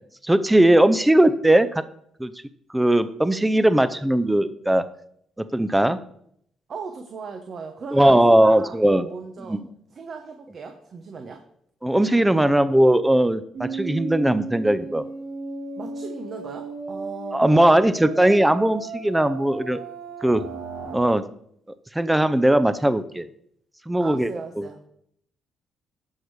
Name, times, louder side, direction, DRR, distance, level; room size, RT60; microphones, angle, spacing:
voice 1, 0.2-1.8 2.2-2.3 2.7-4.8 5.4-6.0 7.9-9.0 9.5-9.6 11.8-15.0 17.3-19.8 20.2-20.4 20.9-21.2 21.9-23.3 23.9-24.3 24.6-24.7, right 1 dB, 10° right, 12 dB, 0.6 m, -19 dB
voice 2, 6.7-9.6 9.9-11.4 12.3-12.5 15.8-17.8 24.0-24.8, right 5 dB, 55° right, 5 dB, 1.1 m, -38 dB
sound 1, 13.5-21.0, right 4 dB, 75° right, 1.9 m, -35 dB
12.0 x 4.7 x 4.8 m, 0.69 s
supercardioid pair, 65°, 0 cm